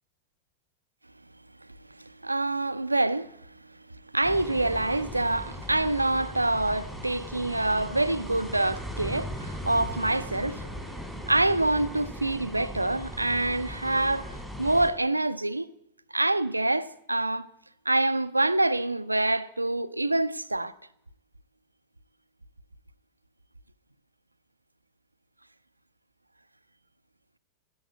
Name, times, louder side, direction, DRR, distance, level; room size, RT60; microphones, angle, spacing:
voice 1, 2.2-3.3 4.1-10.7 11.3-15.7 16.1-17.5 17.9-20.7, right 2 dB, 85° right, 0.5 m, -26 dB
sound 1, 4.2-14.9, equal, 5° left, 2.7 m, -38 dB
11.0 x 7.1 x 9.7 m
figure-of-eight pair, 90°, 0 cm